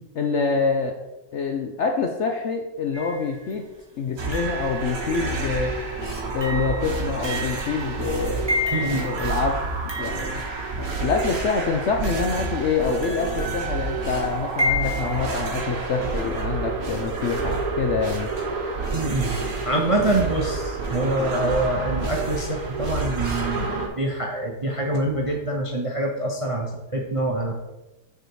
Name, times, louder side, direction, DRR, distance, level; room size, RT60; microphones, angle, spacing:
voice 1, 0.2-1.0 1.3-3.6 4.0-5.7 6.3-9.7 10.0-10.4 11.0-18.3, left 5 dB, 60° left, 3 dB, 0.7 m, -26 dB
sound 1, 2.9-3.5 4.3-11.2 12.0-15.4, left 1 dB, 15° right, 1.2 m, -32 dB
sound 2, 4.2-23.9, right 3 dB, 60° right, 1.6 m, -29 dB
voice 2, 8.7-9.1 18.9-19.3 19.7-27.5, right 1 dB, 35° right, 1 dB, 0.5 m, -25 dB
6.7 x 4.9 x 4.6 m, 1.0 s
omnidirectional pair, 1.8 m